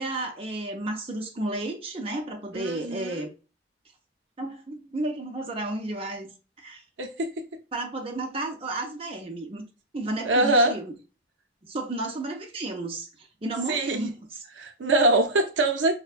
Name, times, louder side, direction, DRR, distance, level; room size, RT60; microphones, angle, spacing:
voice 1, 0.0-3.3 4.4-6.8 7.7-9.7 9.9-10.9 11.6-14.4, right 2 dB, 30° right, 0.6 m, -32 dB
voice 2, 2.5-3.3 7.0-7.4 10.2-10.7 13.7-14.1 14.6-16.0, right 2 dB, 90° right, 0.5 m, -23 dB
4.5 x 2.1 x 2.4 m
head